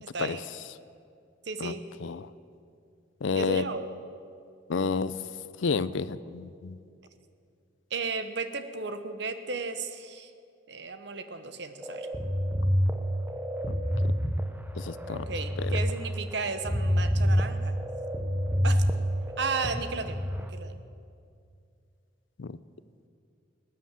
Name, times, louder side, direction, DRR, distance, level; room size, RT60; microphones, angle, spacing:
voice 1, 0.0-0.4 1.5-1.8 3.2-3.8 7.9-10.3 10.7-12.1 15.1-17.8 18.6-18.8 19.4-20.8, right 4 dB, 60° right, 9 dB, 1.0 m, -34 dB
voice 2, 3.2-3.6 4.7-5.1 5.6-6.8 13.7-13.8 14.8-15.2 15.6-15.8 22.4-22.6, left 4 dB, 75° left, 16 dB, 0.5 m, -30 dB
sound 1, 11.8-20.4, equal, 10° right, 0.7 m, -28 dB
19.0 x 9.7 x 7.5 m, 2.4 s
head